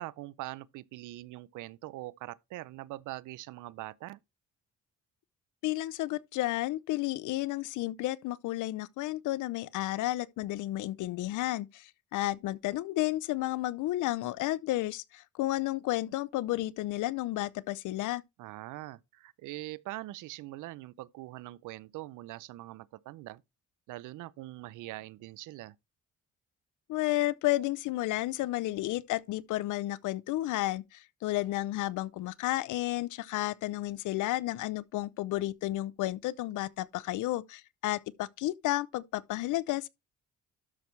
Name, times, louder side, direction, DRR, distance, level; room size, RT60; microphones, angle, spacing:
voice 1, 0.0-4.2 18.4-23.4 23.9-25.8, right 17 dB, 85° right, 0.6 m, -43 dB
voice 2, 5.6-18.2 26.9-39.9, left 16 dB, 85° left, 0.6 m, -32 dB
12.5 x 6.0 x 3.2 m
cardioid pair, 90°, 30 cm